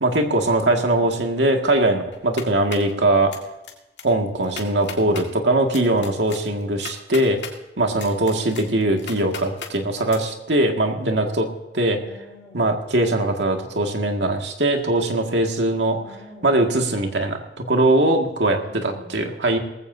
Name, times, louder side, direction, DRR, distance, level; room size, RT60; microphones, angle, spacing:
voice 1, 0.0-3.3 4.0-7.4 7.8-11.5 11.7-12.0 12.5-16.0 16.4-19.6, right 1 dB, 85° right, 3 dB, 2.1 m, -21 dB
sound 1, 2.1-2.9 3.3-3.7 4.0-4.1 4.4-5.3 5.7-7.5 8.0-9.7 10.1-10.2, left 6 dB, 90° left, 2.0 m, -36 dB
voice 2, 4.3-5.2 8.3-8.8 11.9-12.7 15.9-16.6 18.6-19.3, equal, 25° left, -7 dB, 4.6 m, -45 dB
19.0 x 15.5 x 2.8 m, 0.98 s
head